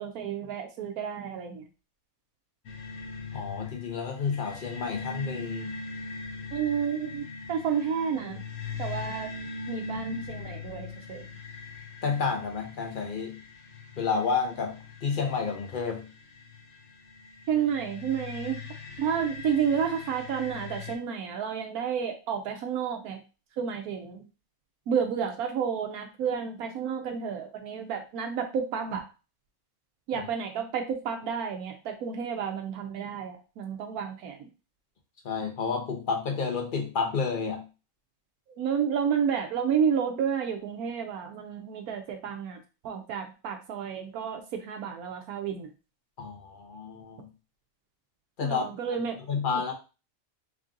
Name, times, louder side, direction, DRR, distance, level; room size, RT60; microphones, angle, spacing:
voice 1, 0.0-1.6 6.5-8.4 8.8-9.3 9.7-11.2 17.5-18.6 19.0-23.2 23.6-24.2 24.9-29.0 30.1-34.3 38.6-42.6 42.8-45.7 48.4-49.2, right 7 dB, 85° right, 4 dB, 1.1 m, -30 dB
sound 1, 2.7-21.0, left 3 dB, 60° left, 1.0 m, -41 dB
voice 2, 3.3-5.8 12.0-13.4 14.0-16.1 30.2-30.3 35.2-37.6 46.2-47.3 48.4-48.7 48.9-49.0 49.3-49.7, left 5 dB, 40° left, 2 dB, 0.9 m, -30 dB
3.6 x 2.7 x 3.6 m, 0.31 s
omnidirectional pair, 1.5 m